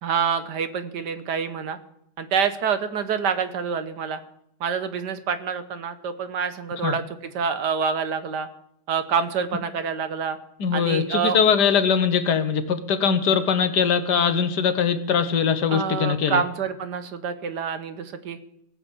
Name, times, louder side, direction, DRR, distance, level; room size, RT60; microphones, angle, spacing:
voice 1, 0.0-1.8 2.2-4.2 4.6-7.0 7.3-8.5 8.9-10.4 10.7-11.4 15.7-18.4, right 6 dB, 70° right, 10 dB, 1.6 m, -27 dB
voice 2, 10.6-16.4, left 7 dB, 70° left, 10 dB, 1.6 m, -21 dB
18.5 x 7.5 x 7.2 m, 0.77 s
omnidirectional pair, 1.9 m